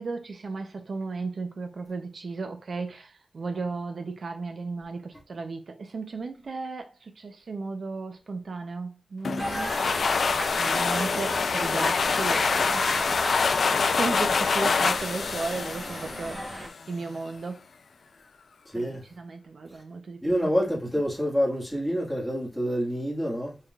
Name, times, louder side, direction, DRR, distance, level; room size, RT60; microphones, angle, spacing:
voice 1, 0.0-10.0 10.6-13.0 13.3-17.6 18.7-20.5, right 3 dB, 65° right, 0.8 m, -35 dB
sound 1, 9.2-16.7, left 5 dB, 75° left, 0.4 m, -25 dB
sound 2, 9.4-16.7, right 1 dB, 25° right, 1.2 m, -36 dB
voice 2, 18.7-19.1 19.7-19.8 20.2-23.6, equal, ahead, 1.8 m, -27 dB
5.5 x 3.5 x 2.5 m
wide cardioid pair, 135°, 0 cm